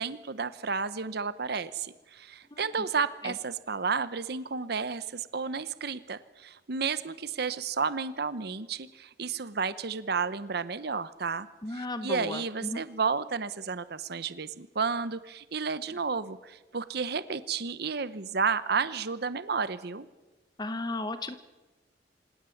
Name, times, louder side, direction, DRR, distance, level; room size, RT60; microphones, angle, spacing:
voice 1, 0.0-11.5 11.7-20.1, right 5 dB, 60° right, 15 dB, 0.8 m, -32 dB
voice 2, 11.6-12.8 20.6-21.3, left 2 dB, 25° left, 11 dB, 0.9 m, -35 dB
26.5 x 17.5 x 7.2 m, 1.2 s
head